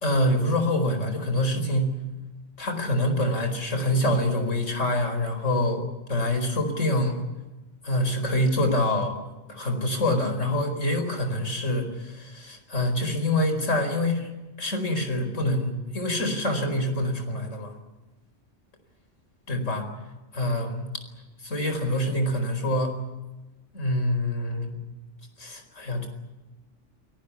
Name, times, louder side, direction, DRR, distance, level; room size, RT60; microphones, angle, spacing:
voice 1, 0.0-2.0 2.6-7.2 7.8-9.2 9.5-14.3 14.6-17.8 19.5-19.9 20.3-20.9 21.4-23.0 23.7-24.8 25.4-26.1, left 1 dB, 90° left, 7 dB, 4.9 m, -26 dB
29.0 x 18.5 x 8.4 m, 1.1 s
omnidirectional pair, 1.3 m